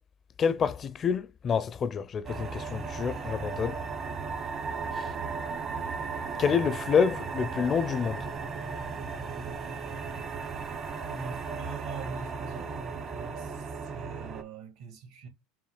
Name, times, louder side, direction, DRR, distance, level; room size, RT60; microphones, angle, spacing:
voice 1, 0.4-3.8 5.0-5.1 6.4-8.3, left 6 dB, 35° left, 0.4 m, -28 dB
sound 1, 2.2-14.4, right 5 dB, 40° right, 1.0 m, -36 dB
voice 2, 11.0-15.3, right 4 dB, 65° right, 1.7 m, -42 dB
5.6 x 2.3 x 3.1 m
hypercardioid pair, 85°, 0 cm